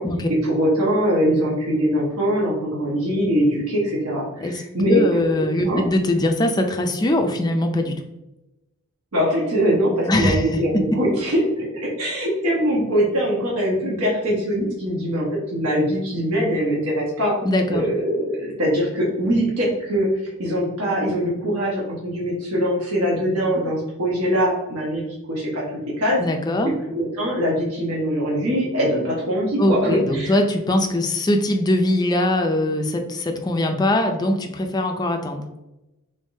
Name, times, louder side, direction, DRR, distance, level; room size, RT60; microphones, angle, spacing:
voice 1, 0.3-5.0 5.6-5.9 9.1-17.4 17.7-20.1 20.4-25.0 25.3-25.6 26.0-26.2 26.6-29.8 30.1-30.4, equal, 85° right, -4 dB, 1.2 m, -22 dB
voice 2, 4.9-8.0 10.1-10.6 17.4-17.9 26.2-26.7 29.6-35.5, left 1 dB, 20° left, 4 dB, 0.3 m, -21 dB
3.7 x 3.5 x 2.6 m, 0.94 s
head